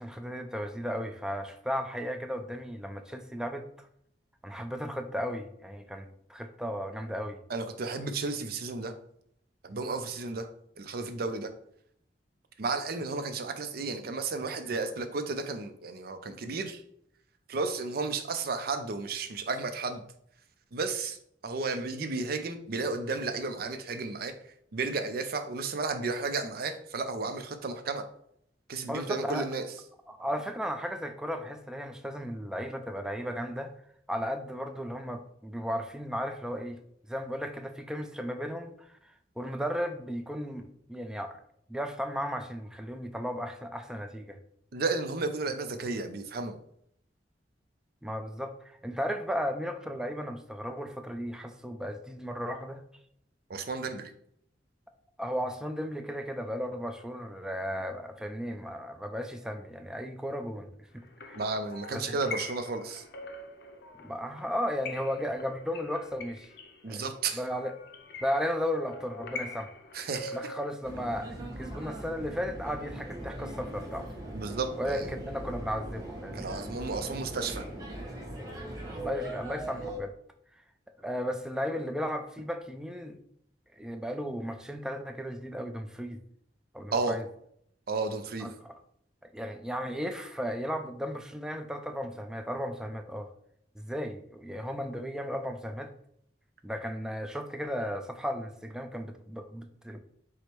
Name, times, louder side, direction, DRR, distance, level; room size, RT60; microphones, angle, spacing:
voice 1, 0.0-3.9 4.4-7.4 28.8-29.5 30.1-33.7 34.1-36.8 37.1-41.4 41.7-44.4 48.0-52.8 55.2-60.7 60.9-61.4 61.9-62.1 64.0-66.5 66.9-67.0 67.3-67.7 68.2-69.7 70.3-74.1 74.8-76.5 79.0-80.1 81.0-83.2 83.8-86.2 86.7-87.2 88.4-88.7 89.2-93.3 93.8-95.9 96.6-100.0, equal, 5° right, 6 dB, 0.4 m, -35 dB
voice 2, 7.5-8.9 9.6-10.5 10.8-11.5 12.6-16.8 17.5-20.0 20.7-21.2 21.4-24.3 24.7-28.0 28.7-29.7 44.7-46.6 53.5-54.1 61.3-63.0 66.8-67.4 69.9-70.4 74.3-75.1 76.3-77.6 86.9-87.2 87.9-88.5, right 3 dB, 60° right, 8 dB, 0.5 m, -33 dB
sound 1, 61.0-70.7, left 3 dB, 65° left, 0.6 m, -44 dB
sound 2, 70.8-80.0, right 1 dB, 20° right, 1.1 m, -40 dB
4.8 x 2.1 x 4.4 m, 0.70 s
head